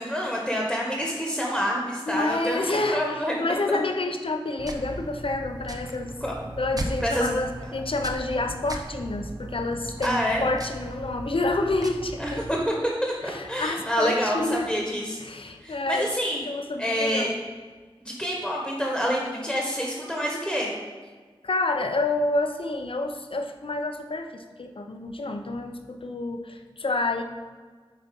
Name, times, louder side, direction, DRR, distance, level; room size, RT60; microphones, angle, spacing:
voice 1, 0.0-3.6 6.2-6.4 7.0-7.3 10.0-10.5 12.2-12.7 13.0-15.2 15.6-16.4 16.8-17.3 18.0-20.7, equal, ahead, -2 dB, 1.5 m, -27 dB
voice 2, 2.1-6.1 6.4-12.4 13.2-14.7 15.2-16.2 16.4-17.4 21.4-27.2, left 2 dB, 70° left, 5 dB, 0.7 m, -28 dB
sound 1, 4.6-12.7, right 1 dB, 40° right, 0.8 m, -37 dB
8.3 x 4.3 x 5.3 m, 1.5 s
wide cardioid pair, 45°, 10 cm